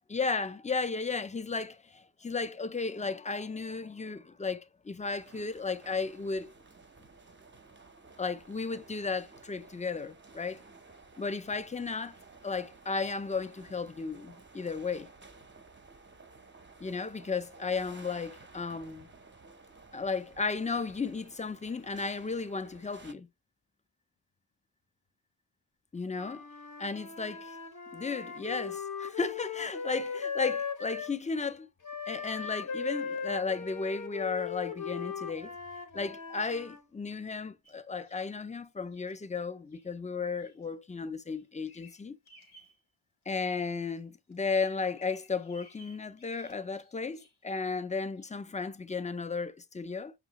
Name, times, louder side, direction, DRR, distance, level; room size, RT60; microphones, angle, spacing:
voice 1, 0.1-6.5 8.2-10.6 11.2-12.2 12.4-15.1 16.8-19.1 19.9-23.3 25.9-26.5 26.8-27.6 27.9-31.7 32.1-35.5 35.9-42.2 43.3-50.1, left 4 dB, 20° left, 0.3 m, -34 dB
sound 1, 5.0-23.1, right 3 dB, 25° right, 0.6 m, -54 dB
Wind instrument woodwind instrument, 26.1-31.1 31.8-36.8, left 6 dB, 40° left, 0.7 m, -38 dB
Bird vocalization bird call bird song, 37.6-38.3 38.9-39.2 39.7-39.9 40.4-40.7 41.0-42.8 43.2-44.0 44.3-47.5 48.2-48.4, left 1 dB, 80° left, 1.0 m, -60 dB
5.6 x 2.4 x 2.8 m
wide cardioid pair, 45°, 47 cm